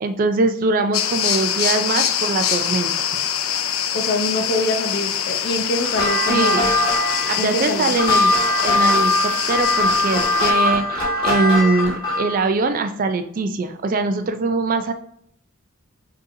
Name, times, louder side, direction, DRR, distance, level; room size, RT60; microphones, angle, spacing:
voice 1, 0.0-3.1 6.3-6.7 7.3-14.9, right 3 dB, 40° right, 8 dB, 0.4 m, -22 dB
sound 1, 0.9-10.5, left 9 dB, 90° left, 0.4 m, -24 dB
voice 2, 3.9-6.7 7.4-8.0, left 1 dB, 55° left, 4 dB, 0.7 m, -25 dB
sound 2, 5.8-12.4, left 1 dB, 25° left, 1.6 m, -20 dB
6.2 x 2.8 x 2.6 m, 0.69 s
head